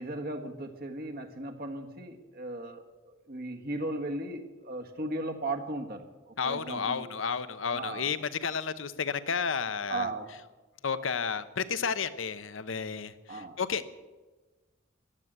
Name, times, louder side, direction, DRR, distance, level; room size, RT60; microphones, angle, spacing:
voice 1, 0.0-7.1 7.7-8.1 9.9-10.3 13.3-13.6, right 2 dB, 50° right, 4 dB, 1.6 m, -37 dB
voice 2, 6.4-10.1 10.8-13.9, left 6 dB, 85° left, 13 dB, 0.9 m, -32 dB
15.0 x 11.0 x 8.1 m, 1.3 s
head